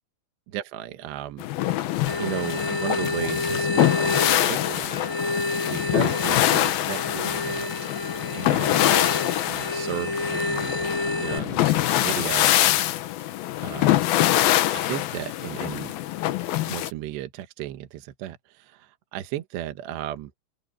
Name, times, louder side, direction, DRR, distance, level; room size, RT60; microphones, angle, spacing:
voice 1, 0.5-1.4 2.2-5.0 5.6-7.9 8.3-8.9 9.5-10.8 11.1-12.5 13.6-14.1 14.7-15.9 16.6-20.3, right 13 dB, 70° right, 3.1 m, -35 dB
sound 1, 1.4-16.9, left 14 dB, 80° left, 2.1 m, -24 dB
sound 2, 2.1-11.4, left 1 dB, 20° left, 2.5 m, -30 dB
open air
omnidirectional pair, 5.7 m